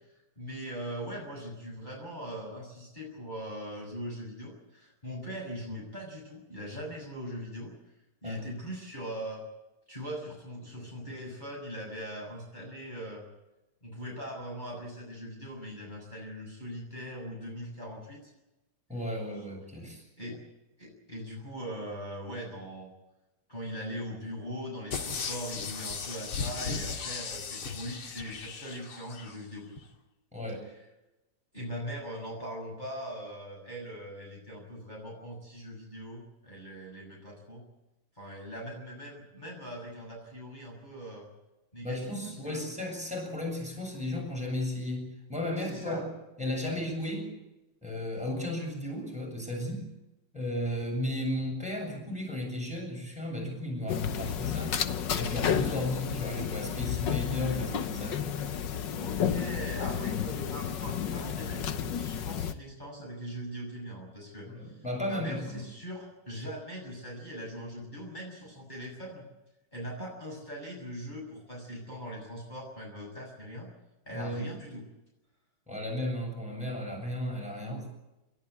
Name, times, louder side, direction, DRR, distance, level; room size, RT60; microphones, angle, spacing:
voice 1, 0.4-7.7 8.2-9.4 9.9-13.3 13.8-18.3 20.2-20.4 20.8-22.9 23.5-29.7 31.5-37.6 38.2-41.3 41.7-42.6 45.6-46.1 46.6-46.8 59.0-69.2 69.7-73.7 74.1-74.8, equal, 20° left, -3 dB, 6.9 m, -41 dB
voice 2, 18.9-20.0 30.3-30.7 41.8-46.0 46.4-47.3 47.8-49.9 50.3-54.8 55.1-58.4 64.5-65.6 74.1-74.5 75.7-77.9, left 1 dB, 5° right, 1 dB, 7.6 m, -34 dB
sound 1, 24.9-29.4 29.8-29.9, left 5 dB, 80° left, 2.8 m, -36 dB
sound 2, 53.9-62.5, left 8 dB, 60° left, 1.7 m, -32 dB
29.0 x 14.0 x 8.4 m, 0.98 s
omnidirectional pair, 2.3 m